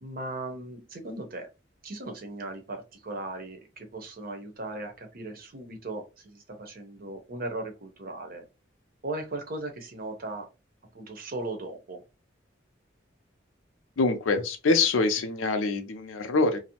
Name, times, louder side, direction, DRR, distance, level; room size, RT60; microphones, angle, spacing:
voice 1, 0.0-1.5 1.8-8.4 9.0-10.5 10.9-12.0, right 2 dB, 50° right, 0.7 m, -37 dB
voice 2, 14.0-16.6, left 3 dB, 90° left, 0.5 m, -25 dB
2.6 x 2.0 x 2.8 m
head